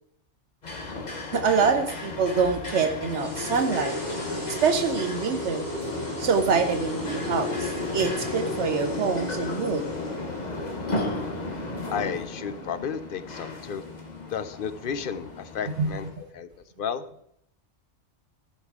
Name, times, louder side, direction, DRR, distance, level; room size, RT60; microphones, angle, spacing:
sound 1, 0.6-16.1, left 2 dB, 40° left, 1.4 m, -34 dB
voice 1, 1.3-4.0 4.5-5.7 6.2-9.8 15.8-15.9, right 5 dB, 75° right, 8 dB, 1.0 m, -25 dB
sound 2, 3.1-14.1, right 1 dB, 15° left, 2.2 m, -40 dB
voice 2, 11.9-13.8 14.3-16.5 16.8-17.0, left 7 dB, 55° left, 13 dB, 0.7 m, -32 dB
14.5 x 5.5 x 4.8 m, 0.74 s
omnidirectional pair, 1.2 m